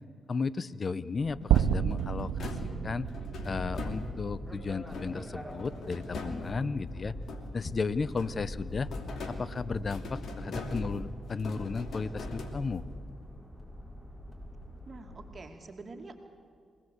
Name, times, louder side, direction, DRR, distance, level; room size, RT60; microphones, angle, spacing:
voice 1, 0.3-2.5 2.8-3.1 3.4-7.2 7.5-8.9 9.3-12.9, left 4 dB, 45° left, 18 dB, 0.8 m, -34 dB
sound 1, 1.2-15.3, left 1 dB, 10° left, 6.2 m, -43 dB
sound 2, 1.4-4.4 4.9-7.7 8.1-13.0, left 3 dB, 70° left, 2.8 m, -42 dB
sound 3, 1.5-5.7, right 10 dB, 90° right, 0.5 m, -31 dB
voice 2, 14.9-16.1, right 3 dB, 45° right, 3 dB, 2.6 m, -46 dB
24.0 x 18.0 x 8.0 m, 2.2 s
supercardioid pair, 55°, 0 cm